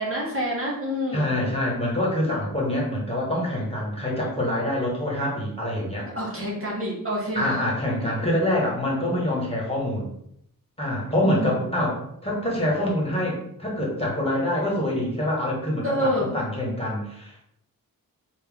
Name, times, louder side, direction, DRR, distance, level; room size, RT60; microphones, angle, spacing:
voice 1, 0.0-1.3 6.1-7.6 11.2-11.7 15.8-16.3, equal, 40° right, -4 dB, 1.3 m, -27 dB
voice 2, 1.1-6.1 7.3-10.1 10.8-17.4, left 1 dB, 15° left, -4 dB, 1.5 m, -25 dB
3.3 x 2.7 x 3.5 m, 0.73 s
wide cardioid pair, 65°, 35 cm